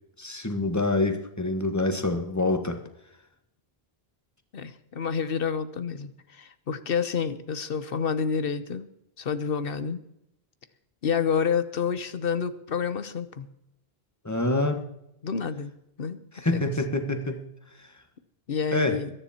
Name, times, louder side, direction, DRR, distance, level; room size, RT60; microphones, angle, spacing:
voice 1, 0.2-2.8 14.2-14.9 16.3-17.4 17.8-17.9 18.7-19.0, left 2 dB, 15° left, 6 dB, 1.5 m, -26 dB
voice 2, 4.5-8.9 9.2-10.0 11.0-13.5 15.2-15.7 16.0-16.2 16.5-16.7 18.5-19.1, left 6 dB, 65° left, 13 dB, 1.1 m, -29 dB
21.5 x 10.0 x 4.4 m, 0.82 s
omnidirectional pair, 1.0 m